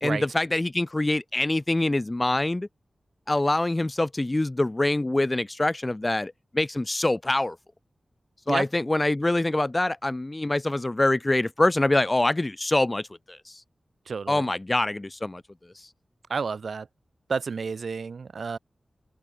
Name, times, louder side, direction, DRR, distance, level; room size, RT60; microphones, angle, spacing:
voice 1, 0.0-2.7 3.3-7.6 8.5-13.6 14.3-15.4 15.8-15.9, left 2 dB, 25° left, 0.7 m, -25 dB
voice 2, 14.1-14.5 16.3-16.9 17.3-18.6, right 5 dB, 75° right, 2.3 m, -30 dB
wide cardioid pair, 85°, 0 cm